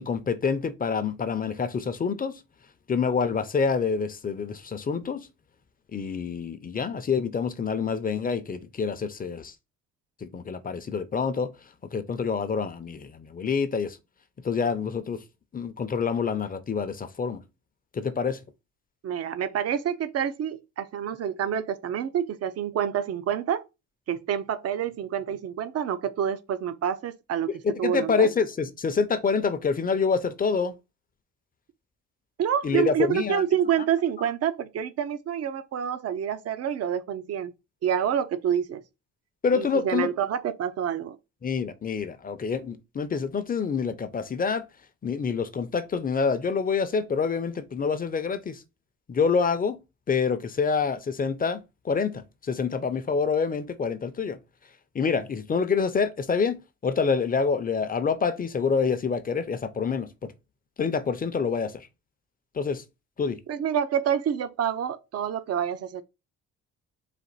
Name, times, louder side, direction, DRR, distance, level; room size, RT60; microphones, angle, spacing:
voice 1, 0.0-2.4 2.9-5.3 5.9-9.5 10.2-11.5 11.9-14.0 14.4-15.2 15.5-17.4 17.9-18.4 27.5-30.7 32.6-33.4 39.4-40.1 41.4-44.6 45.0-48.6 49.1-49.8 50.1-51.6 51.8-54.4 54.9-60.3 60.8-61.9 62.5-62.8 63.2-63.4, left 5 dB, 30° left, 0.6 m, -27 dB
voice 2, 19.0-23.6 24.1-27.5 27.8-28.3 32.4-37.5 37.8-38.8 39.5-41.2 63.5-66.0, right 9 dB, 55° right, 0.6 m, -27 dB
4.2 x 2.6 x 3.9 m
cardioid pair, 90°, 30 cm